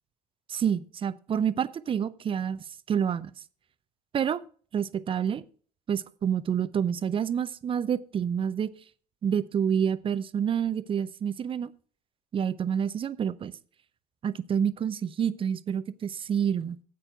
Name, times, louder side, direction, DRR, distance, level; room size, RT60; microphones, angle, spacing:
voice 1, 0.5-2.6 2.9-3.3 4.1-4.4 4.7-5.4 5.9-8.7 9.2-11.7 12.3-13.5 14.2-16.8, right 8 dB, 25° right, 16 dB, 0.6 m, -28 dB
9.9 x 8.5 x 4.6 m, 0.43 s
figure-of-eight pair, 70°, 20 cm